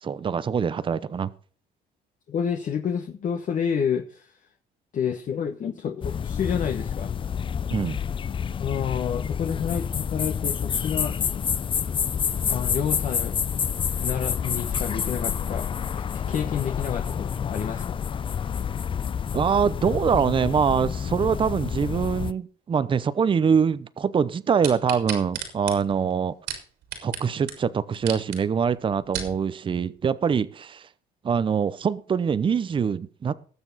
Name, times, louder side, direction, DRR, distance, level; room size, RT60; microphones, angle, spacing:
voice 1, 0.0-1.3 7.7-8.0 19.3-26.3 27.0-30.9 31.2-33.3, right 6 dB, 30° right, 15 dB, 0.7 m, -24 dB
voice 2, 2.3-4.3 4.9-7.1 8.6-11.2 12.5-13.4 14.0-15.7 16.1-18.0, left 7 dB, 50° left, 5 dB, 1.3 m, -29 dB
sound 1, 6.0-22.3, left 7 dB, 30° left, 0.5 m, -28 dB
sound 2, 24.6-27.2 27.5-27.6 27.9-28.4 28.9-29.3 30.0-30.1, right 8 dB, 85° right, 4.0 m, -33 dB
19.0 x 7.0 x 4.1 m, 0.42 s
cardioid pair, 110°, 17 cm